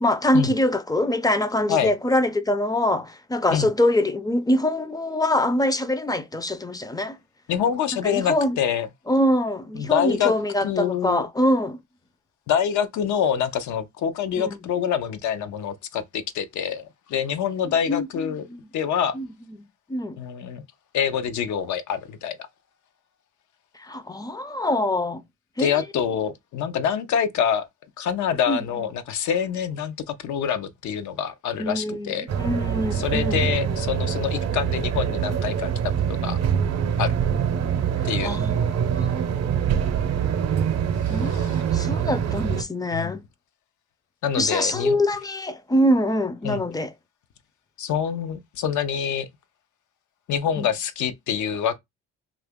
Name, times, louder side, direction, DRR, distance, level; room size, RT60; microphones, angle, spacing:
voice 1, 0.0-7.2 8.0-8.6 9.1-11.8 14.4-14.6 17.9-18.6 19.1-19.3 19.9-20.2 23.8-25.2 25.6-25.7 28.5-28.6 31.6-33.5 38.2-39.2 41.1-43.2 44.4-46.9 50.6-50.7, left 1 dB, 15° left, 0.4 m, -24 dB
voice 2, 7.5-8.9 9.7-10.3 10.6-11.3 12.5-18.5 18.7-19.2 20.2-20.6 20.9-22.4 25.6-27.7 28.0-32.3 32.9-35.7 36.1-36.4 37.0-37.2 38.0-38.4 41.1-41.6 42.9-43.1 44.2-45.0 46.4-46.6 47.8-49.3 50.3-51.8, left 8 dB, 75° left, 0.6 m, -26 dB
sound 1, 32.3-42.6, right 8 dB, 55° right, 0.6 m, -24 dB
2.8 x 2.4 x 3.4 m
cardioid pair, 90°, 30 cm